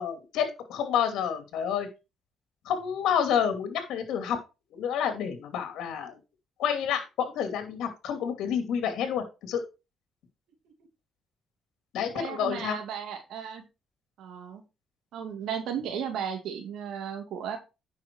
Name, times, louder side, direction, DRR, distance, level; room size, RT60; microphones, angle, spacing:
voice 1, 0.0-1.9 2.6-4.4 4.7-6.2 6.6-9.6 11.9-12.8, left 8 dB, 85° left, 7 dB, 2.6 m, -29 dB
voice 2, 12.1-13.6 14.2-14.6 15.1-17.6, right 8 dB, 80° right, 4 dB, 2.5 m, -35 dB
10.0 x 6.2 x 4.6 m, 0.28 s
cardioid pair, 90°, 0 cm